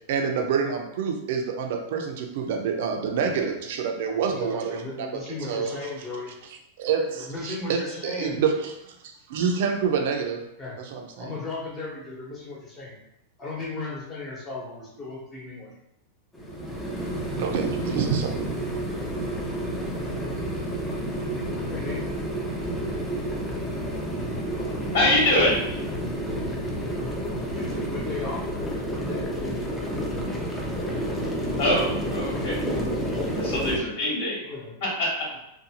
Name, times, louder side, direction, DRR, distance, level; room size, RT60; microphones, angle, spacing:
voice 1, 0.1-5.1 5.4-5.9 6.8-8.9 9.3-10.4 10.8-11.3 17.4-18.6, right 6 dB, 70° right, 3 dB, 0.5 m, -27 dB
voice 2, 3.1-3.5 4.0-6.3 7.2-8.4 10.6-10.8 11.2-13.0 13.4-15.7 21.7-22.0 27.5-28.4 28.8-29.3 31.1-31.2 34.4-34.7, left 3 dB, 25° left, -4 dB, 0.9 m, -36 dB
sound 1, 16.3-33.8, equal, 10° left, 0.5 m, -30 dB
voice 3, 24.9-25.7 31.6-32.6 33.4-34.5 34.8-35.4, left 1 dB, 70° left, -4 dB, 1.3 m, -24 dB
2.6 x 2.3 x 2.8 m, 0.84 s
supercardioid pair, 135°, 0 cm